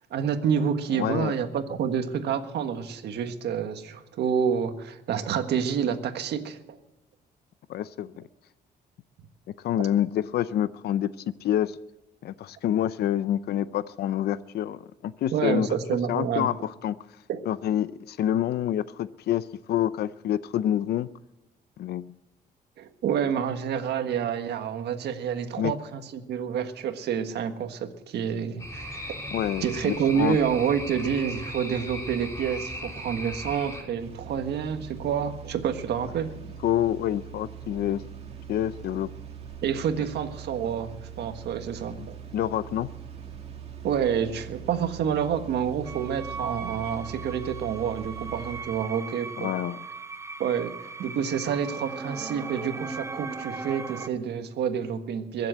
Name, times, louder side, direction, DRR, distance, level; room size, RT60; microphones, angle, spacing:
voice 1, 0.1-6.6 15.3-16.5 17.3-17.4 22.8-29.2 29.6-36.3 39.6-42.2 43.8-49.5 50.4-55.5, right 8 dB, 80° right, 7 dB, 1.5 m, -28 dB
voice 2, 0.9-1.3 7.7-8.1 9.6-11.8 12.2-15.7 16.1-17.0 17.5-21.1 21.8-22.1 25.6-25.7 29.3-30.4 36.6-38.0 38.5-39.1 42.0-42.1 42.3-42.9 49.4-49.9, left 11 dB, 70° left, 15 dB, 0.6 m, -27 dB
sound 1, 28.6-33.8, equal, 20° left, 3.6 m, -37 dB
sound 2, 34.0-48.6, right 8 dB, 35° right, 2.5 m, -42 dB
sound 3, 45.8-54.1, right 4 dB, 15° right, 0.7 m, -38 dB
22.5 x 7.7 x 7.9 m, 0.99 s
cardioid pair, 140°, 17 cm